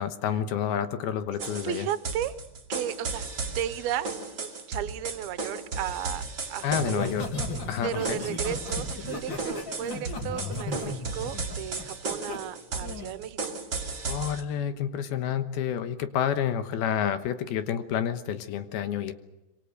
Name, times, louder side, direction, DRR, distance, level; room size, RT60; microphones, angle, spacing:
voice 1, 0.0-1.9 6.6-7.3 7.7-8.2 14.0-19.1, left 9 dB, 75° left, 10 dB, 3.0 m, -29 dB
sound 1, 1.4-14.4, right 4 dB, 30° right, 3.0 m, -35 dB
voice 2, 1.6-2.3 2.7-4.1 4.4-6.2 6.5-7.1 7.8-13.6, right 11 dB, 75° right, 14 dB, 2.7 m, -34 dB
Laughter, 6.7-12.4 12.8-13.1, left 3 dB, 35° left, 2.8 m, -35 dB
26.0 x 24.0 x 6.5 m, 0.99 s
omnidirectional pair, 4.6 m